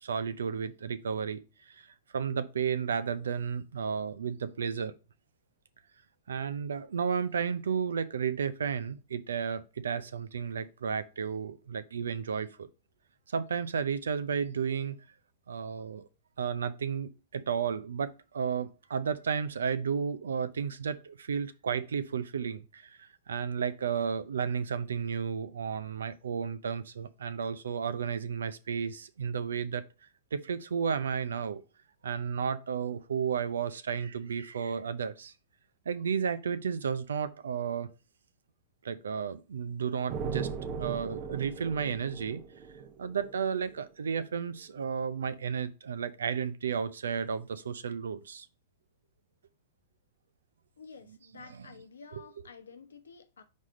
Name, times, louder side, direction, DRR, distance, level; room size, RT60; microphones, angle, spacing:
voice 1, 0.0-4.9 6.3-12.7 13.3-15.0 15.5-16.1 16.4-29.8 30.3-31.6 32.0-35.3 35.9-37.9 38.8-42.4 43.0-48.5, right 6 dB, 80° right, 0.6 m, -33 dB
sound 1, 40.1-43.8, right 6 dB, 45° right, 0.9 m, -38 dB
voice 2, 50.8-53.4, left 5 dB, 85° left, 0.9 m, -50 dB
4.8 x 4.2 x 5.2 m
hypercardioid pair, 110°, 0 cm